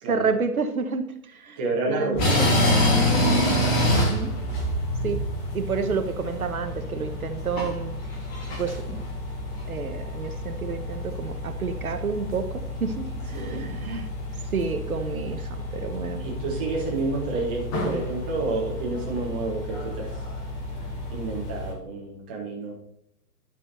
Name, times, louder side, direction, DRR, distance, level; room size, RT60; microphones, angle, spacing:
voice 1, 0.0-1.6 1.9-2.2 3.9-4.3 5.0-5.2 5.5-8.0 8.6-8.8 9.7-14.1 14.5-16.2, right 5 dB, 65° right, 8 dB, 1.2 m, -29 dB
voice 2, 1.6-3.5 13.3-13.7 16.2-20.1 21.1-22.7, right 3 dB, 5° right, -4 dB, 0.5 m, -30 dB
sound 1, 2.1-21.7, left 1 dB, 20° left, 1.6 m, -28 dB
12.0 x 5.0 x 4.0 m, 0.75 s
figure-of-eight pair, 125°, 47 cm